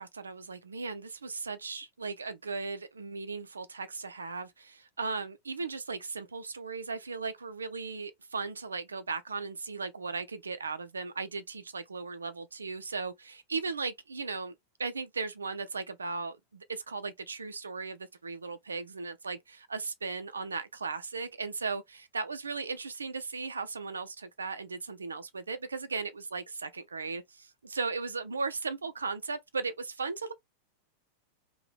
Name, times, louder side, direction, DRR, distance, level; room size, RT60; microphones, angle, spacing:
voice 1, 0.0-14.5 14.8-30.3, right 4 dB, 75° right, 0.3 m, -37 dB
2.7 x 2.1 x 3.1 m
figure-of-eight pair, 90°, 0 cm